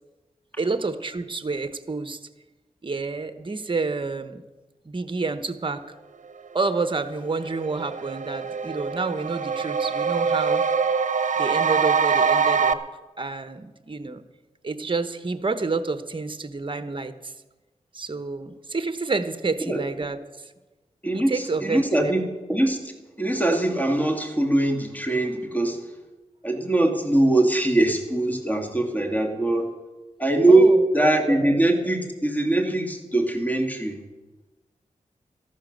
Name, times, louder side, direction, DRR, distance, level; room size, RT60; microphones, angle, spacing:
voice 1, 0.6-2.2 2.8-4.4 4.8-5.9 6.5-10.6 11.4-12.8 13.2-14.2 14.6-17.3 17.9-20.5 21.1-22.1 30.5-31.4, right 3 dB, 40° right, 10 dB, 1.1 m, -29 dB
sound 1, 7.4-12.7, right 6 dB, 65° right, 0.8 m, -24 dB
voice 2, 21.0-22.8 23.2-25.8 26.4-29.7 30.2-34.0, right 2 dB, 10° left, 4 dB, 2.4 m, -21 dB
13.5 x 11.5 x 6.7 m, 1.2 s
wide cardioid pair, 70°, 13 cm